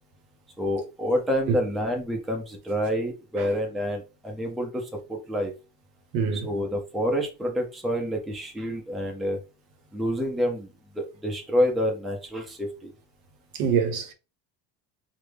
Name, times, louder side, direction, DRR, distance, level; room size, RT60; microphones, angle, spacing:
voice 1, 0.6-5.5 6.3-9.4 9.9-10.7 10.9-12.9, equal, ahead, 0.5 m, -28 dB
voice 2, 6.1-6.5 13.6-14.1, right 6 dB, 55° right, 0.7 m, -24 dB
3.4 x 2.1 x 3.3 m
cardioid pair, 135°, 42 cm